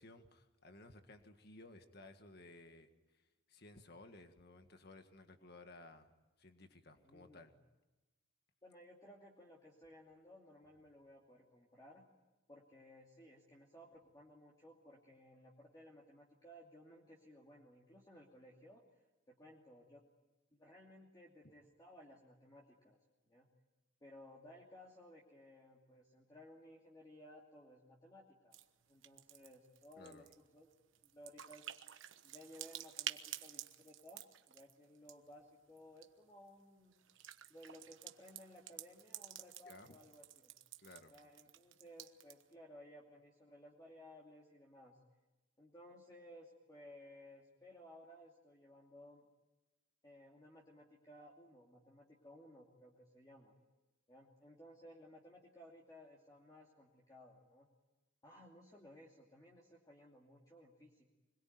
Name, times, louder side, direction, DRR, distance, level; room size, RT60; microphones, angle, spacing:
voice 1, 0.0-6.1 6.4-7.5 30.0-30.3 39.7-40.0 40.8-41.1, left 2 dB, 50° left, 6 dB, 1.8 m, -58 dB
voice 2, 7.0-7.5 8.6-12.1 12.5-18.8 19.3-20.0 20.5-23.0 23.3-23.5 24.0-28.6 28.9-30.3 30.5-30.7 31.0-31.7 32.2-36.9 37.5-40.5 41.1-45.0 45.6-49.2 50.0-53.6 54.1-57.7 58.2-61.1, left 1 dB, 20° left, -2 dB, 2.6 m, -59 dB
sound 1, 28.5-28.6 28.9-35.3 35.8-36.1 36.9-42.5, right 11 dB, 70° right, 1.2 m, -50 dB
26.0 x 21.0 x 9.4 m, 1.1 s
head